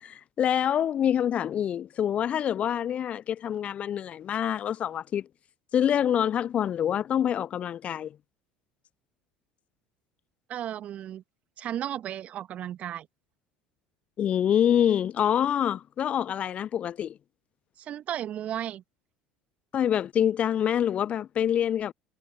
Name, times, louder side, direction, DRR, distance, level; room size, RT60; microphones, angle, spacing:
voice 1, 0.0-5.3 5.7-8.2 14.2-17.2 19.7-21.9, left 9 dB, 40° left, 0.6 m, -26 dB
voice 2, 10.5-11.2 11.6-13.1 17.8-18.8, right 11 dB, 45° right, 2.4 m, -34 dB
figure-of-eight pair, 65°, 3 cm